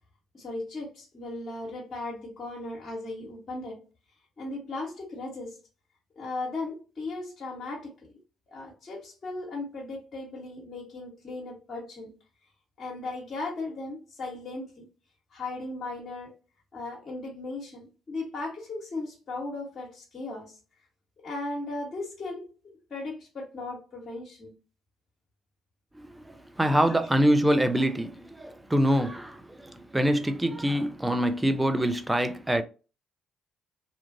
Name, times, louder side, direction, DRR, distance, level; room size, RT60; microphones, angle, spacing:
voice 1, 0.3-3.8 4.4-5.6 6.2-8.2 8.5-12.1 12.8-14.9 15.3-16.4 16.7-20.6 21.2-22.5 22.9-24.5 26.9-27.0, left 2 dB, 45° left, 1.1 m, -37 dB
voice 2, 26.6-32.6, equal, 15° right, 0.5 m, -25 dB
2.8 x 2.4 x 2.6 m
hypercardioid pair, 50°, 0 cm